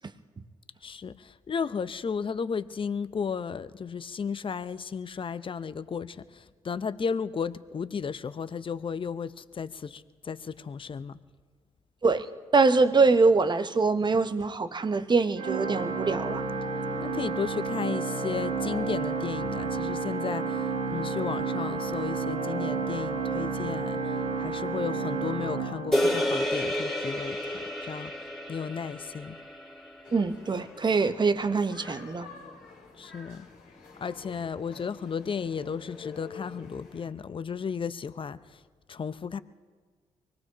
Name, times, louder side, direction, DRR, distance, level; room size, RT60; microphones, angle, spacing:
voice 1, 0.8-11.2 17.0-28.1 28.5-29.4 32.9-33.5 34.0-38.6 38.9-39.4, left 6 dB, 40° left, 14 dB, 0.7 m, -34 dB
voice 2, 12.5-16.4 30.1-32.3, right 4 dB, 35° right, 10 dB, 1.0 m, -24 dB
Organ, 15.4-26.5, right 4 dB, 80° right, 1.4 m, -31 dB
sound 1, 25.9-30.4, left 1 dB, 5° left, 2.6 m, -30 dB
sound 2, 30.0-37.1, left 4 dB, 75° left, 2.1 m, -47 dB
24.0 x 18.0 x 3.0 m, 1.5 s
hypercardioid pair, 45°, 14 cm